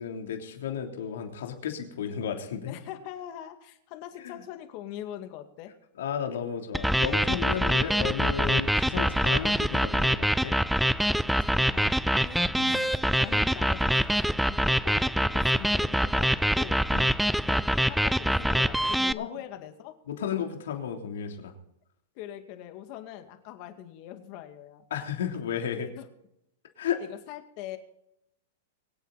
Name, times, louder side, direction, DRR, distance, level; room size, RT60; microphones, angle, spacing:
voice 1, 0.0-2.8 4.2-4.4 6.0-10.5 12.6-12.8 16.9-17.1 19.2-19.3 20.1-21.5 24.9-25.9 26.8-27.0, left 8 dB, 80° left, 3 dB, 3.2 m, -33 dB
voice 2, 2.7-5.7 11.4-12.4 12.7-16.9 17.4-20.0 22.2-24.8 25.7-26.0 27.0-27.8, left 12 dB, 45° left, 7 dB, 2.2 m, -42 dB
sound 1, 6.7-19.1, equal, ahead, 0.4 m, -25 dB
24.5 x 8.5 x 4.2 m, 0.80 s
hypercardioid pair, 135°, 0 cm